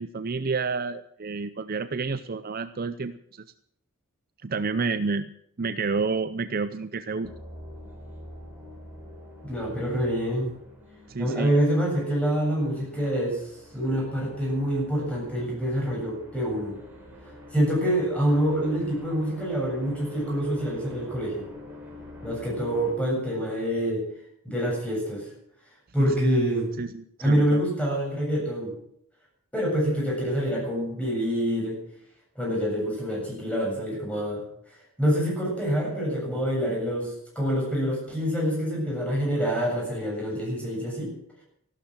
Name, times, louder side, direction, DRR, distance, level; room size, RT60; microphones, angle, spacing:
voice 1, 0.0-3.5 4.4-5.3 5.6-7.3 11.1-11.5 26.0-26.4 26.8-27.6, right 4 dB, 40° right, 12 dB, 0.6 m, -30 dB
sound 1, 7.2-22.9, left 1 dB, 10° right, 4.4 m, -46 dB
voice 2, 9.4-10.5 11.2-16.8 17.5-21.4 22.2-24.0 24.4-25.3 25.9-26.7 27.2-28.8 29.5-31.8 32.4-34.4 35.0-41.1, equal, 5° left, -3 dB, 7.6 m, -26 dB
14.5 x 12.5 x 7.5 m, 0.72 s
head